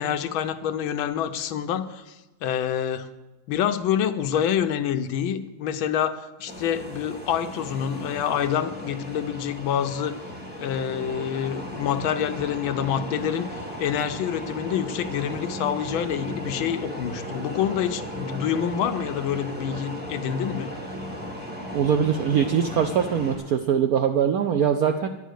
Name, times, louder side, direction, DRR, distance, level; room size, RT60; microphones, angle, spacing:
voice 1, 0.0-3.1 3.5-10.1 10.6-20.7, left 9 dB, 80° left, 9 dB, 1.5 m, -27 dB
sound 1, 6.5-23.4, equal, 5° right, 1.8 m, -36 dB
voice 2, 21.7-25.1, right 8 dB, 80° right, 7 dB, 0.8 m, -22 dB
10.0 x 10.0 x 6.4 m, 1.1 s
omnidirectional pair, 2.2 m